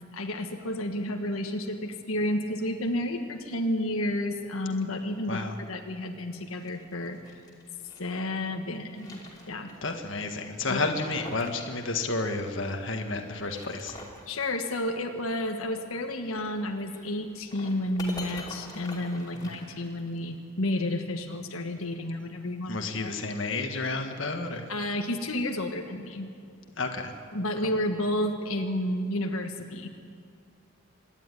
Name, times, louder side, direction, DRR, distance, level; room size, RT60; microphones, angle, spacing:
voice 1, 0.1-5.4 5.7-7.2 8.0-9.2 9.5-9.7 10.7-10.8 14.3-23.1 24.7-26.3 27.3-29.9, left 1 dB, 90° left, 4 dB, 1.5 m, -31 dB
sound 1, 6.4-8.2 8.7-9.9 10.2-10.3 10.8-11.6 11.9-12.0 13.2-14.3 16.2-20.3, left 2 dB, 20° left, 2.8 m, -45 dB
voice 2, 9.8-13.9 19.3-19.5 22.7-24.6 26.8-27.1, left 3 dB, 60° left, 4 dB, 1.6 m, -31 dB
25.5 x 10.5 x 9.8 m, 2.3 s
head